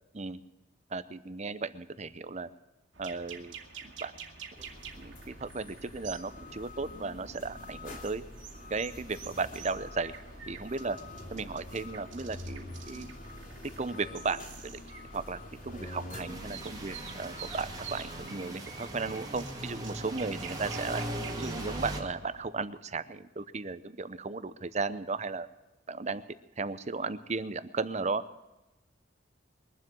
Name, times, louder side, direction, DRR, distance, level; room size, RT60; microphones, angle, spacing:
voice 1, 0.9-2.5 3.0-3.5 3.8-4.1 5.0-8.2 8.7-10.1 10.5-11.0 11.3-13.1 13.8-14.8 15.1-21.0 21.4-25.5 25.9-26.2 26.6-28.2, right 4 dB, 35° right, 14 dB, 0.7 m, -35 dB
sound 1, 2.9-22.5, right 6 dB, 75° right, 2.3 m, -49 dB
sound 2, 4.6-18.3, left 1 dB, 45° left, 2.7 m, -46 dB
sound 3, 16.3-22.0, right 1 dB, 20° right, 2.1 m, -39 dB
22.5 x 7.7 x 7.6 m, 1.0 s
head